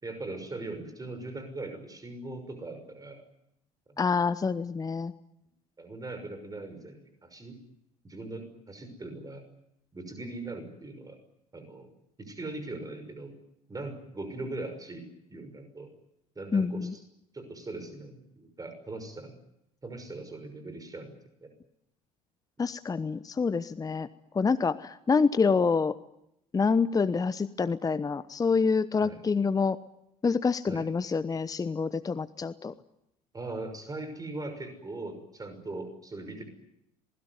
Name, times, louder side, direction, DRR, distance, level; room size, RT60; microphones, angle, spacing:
voice 1, 0.0-3.2 3.9-4.0 5.8-7.6 8.0-9.4 9.9-11.2 11.5-11.9 12.2-13.3 13.7-15.0 15.3-15.9 16.4-17.0 17.3-19.4 19.8-21.5 29.0-29.2 30.7-30.9 33.3-36.4, right 2 dB, 20° right, 8 dB, 6.0 m, -40 dB
voice 2, 4.0-5.1 16.5-16.9 22.6-24.1 24.3-25.9 26.5-29.8 30.2-32.7, left 5 dB, 20° left, 15 dB, 0.9 m, -27 dB
27.0 x 20.5 x 9.6 m, 0.81 s
figure-of-eight pair, 65°, 20 cm